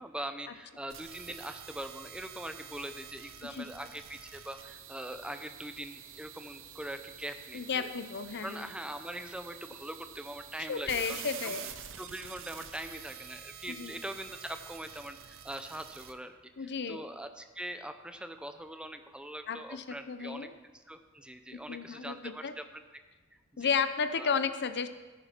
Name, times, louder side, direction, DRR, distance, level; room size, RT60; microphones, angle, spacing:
voice 1, 0.0-7.9 8.4-11.5 12.0-20.5 20.9-22.8 23.5-23.7 24.2-24.3, right 1 dB, 5° right, 8 dB, 0.6 m, -42 dB
sound 1, 0.9-16.1, right 9 dB, 65° right, 0.8 m, -48 dB
voice 2, 7.5-8.7 10.7-11.7 13.7-13.9 16.6-17.0 19.5-20.5 21.7-22.5 23.6-24.9, left 6 dB, 55° left, 10 dB, 0.7 m, -33 dB
13.5 x 10.0 x 4.5 m, 1.3 s
head